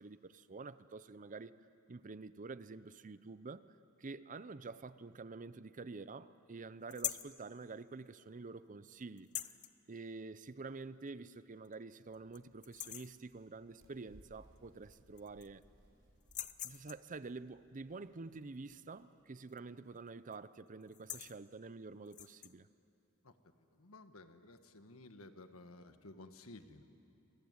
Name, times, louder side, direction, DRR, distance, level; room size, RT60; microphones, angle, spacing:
voice 1, 0.0-1.5 1.9-3.7 4.0-9.3 9.9-15.6 16.6-22.7, right 3 dB, 35° right, 15 dB, 0.6 m, -48 dB
sound 1, 6.9-7.4 9.2-9.7 11.1-11.2 11.6-11.7 12.1-12.4 12.6-13.2 14.6-14.7 14.9-15.6 16.2-17.1 19.5-19.8 20.1-20.4 20.8-21.4 22.1-22.5, left 11 dB, 35° left, 0.7 m, -43 dB
sound 2, 12.1-18.8, equal, 60° right, 6.8 m, -67 dB
voice 2, 23.7-26.8, left 2 dB, 70° left, 8 dB, 1.5 m, -55 dB
27.0 x 21.5 x 9.6 m, 2.7 s
head